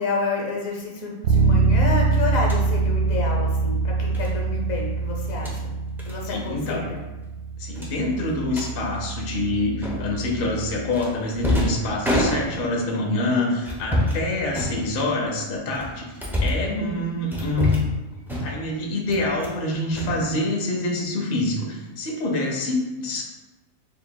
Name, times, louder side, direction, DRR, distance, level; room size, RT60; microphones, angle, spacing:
voice 1, 0.0-5.7 6.0-7.0 16.6-17.0, left 3 dB, 75° left, -1 dB, 1.3 m, -29 dB
Bass guitar, 1.2-11.0, right 4 dB, 80° right, 1.0 m, -25 dB
sound 1, 2.4-2.7 4.1-4.3 5.2-5.6 6.0-6.2 6.5-6.7 7.0-7.1 7.7-8.7 9.8-10.3 10.9-12.8 13.6-14.2 14.5-15.2 15.7-16.7 17.3-18.0 18.3-18.7 19.1-19.6 19.9-20.8, left 1 dB, ahead, 0.5 m, -27 dB
voice 2, 6.3-6.8 7.6-16.1 16.4-17.9 18.4-23.2, left 2 dB, 50° left, -1 dB, 0.8 m, -26 dB
6.7 x 2.9 x 2.2 m, 1.1 s
omnidirectional pair, 1.4 m